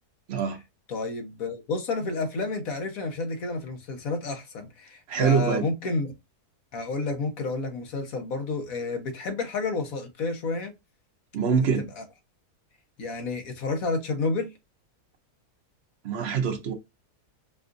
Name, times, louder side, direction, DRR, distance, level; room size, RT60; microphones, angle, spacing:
voice 1, 0.9-6.1 6.7-10.7 11.6-12.0 13.0-14.5, left 3 dB, 65° left, 1.4 m, -30 dB
voice 2, 5.1-5.6 11.3-11.9 16.0-16.7, right 6 dB, 50° right, 0.9 m, -24 dB
4.9 x 2.4 x 2.5 m
omnidirectional pair, 1.7 m